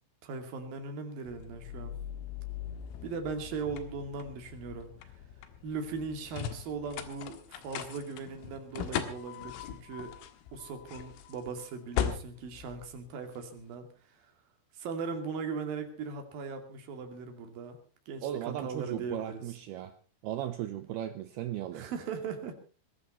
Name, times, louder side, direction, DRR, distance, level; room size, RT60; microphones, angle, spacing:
voice 1, 0.2-2.0 3.0-5.1 5.6-10.2 10.5-14.3 14.7-17.8 18.1-19.4 21.7-22.5, right 5 dB, 50° right, 6 dB, 3.8 m, -39 dB
sound 1, 1.3-13.6, left 9 dB, 85° left, 4.2 m, -40 dB
voice 2, 18.2-19.9 20.2-21.9, right 12 dB, 80° right, 10 dB, 2.2 m, -36 dB
20.5 x 15.5 x 4.2 m, 0.37 s
omnidirectional pair, 5.8 m